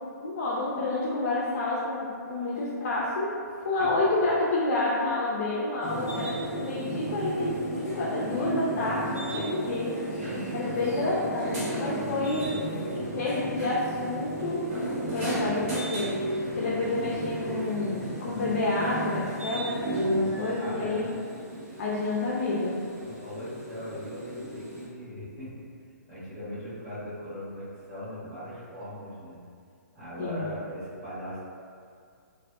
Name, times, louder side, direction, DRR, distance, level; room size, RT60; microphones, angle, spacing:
voice 1, 0.0-3.3 3.6-10.0 10.5-12.5 12.9-14.7 15.1-16.2 16.5-21.1 21.8-22.8 30.2-30.5, left 2 dB, 50° left, -6 dB, 0.5 m, -29 dB
sound 1, 5.8-24.8, right 1 dB, 45° right, 1.3 m, -34 dB
voice 2, 8.2-8.6 9.2-9.7 10.1-10.7 12.2-13.1 15.1-15.5 19.8-21.1 23.0-25.5 26.1-29.4 29.9-31.4, equal, 25° right, -15 dB, 1.3 m, -40 dB
3.4 x 2.6 x 2.3 m, 2.3 s
hypercardioid pair, 155°, 10 cm